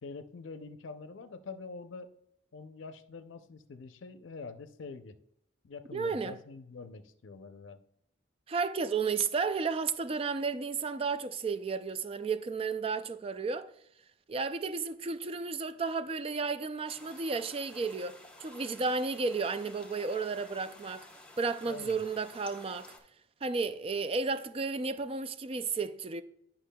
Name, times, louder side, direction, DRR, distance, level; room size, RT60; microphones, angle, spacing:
voice 1, 0.0-2.1 2.5-5.2 5.6-7.8 21.7-22.0, left 4 dB, 80° left, 0.5 m, -45 dB
voice 2, 5.9-6.3 8.5-13.7 14.3-18.1 18.4-21.1 21.4-22.9 23.4-26.2, right 4 dB, 30° right, 0.3 m, -33 dB
sound 1, 16.9-23.0, left 1 dB, 5° left, 0.9 m, -53 dB
10.0 x 5.8 x 2.2 m
head